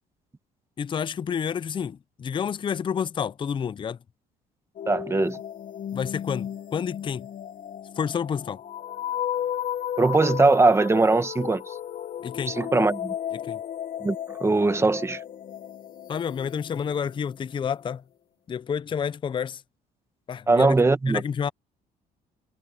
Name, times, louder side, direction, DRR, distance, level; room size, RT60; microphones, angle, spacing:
voice 1, 0.8-4.0 5.9-7.3 8.0-8.6 12.2-12.6 13.3-13.6 16.1-18.0 18.5-19.6 20.3-20.8 21.1-21.5, left 7 dB, 30° left, 0.5 m, -29 dB
sound 1, 4.8-17.5, left 10 dB, 55° left, 1.4 m, -34 dB
voice 2, 4.9-5.4 10.0-11.6 12.5-13.1 14.0-14.1 14.4-15.2 20.5-21.2, right 3 dB, 15° right, 1.4 m, -20 dB
cardioid pair, 110°, 17 cm